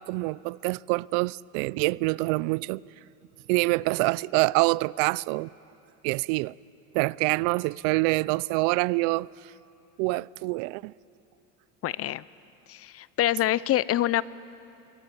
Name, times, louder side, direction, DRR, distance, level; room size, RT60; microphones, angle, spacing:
voice 1, 0.1-2.8 3.5-5.5 6.0-6.5 6.9-9.3 10.0-10.9, right 23 dB, 80° right, 0.5 m, -26 dB
voice 2, 11.8-12.2 12.7-14.2, left 14 dB, 40° left, 0.6 m, -25 dB
25.5 x 23.0 x 9.3 m
supercardioid pair, 120°, 38 cm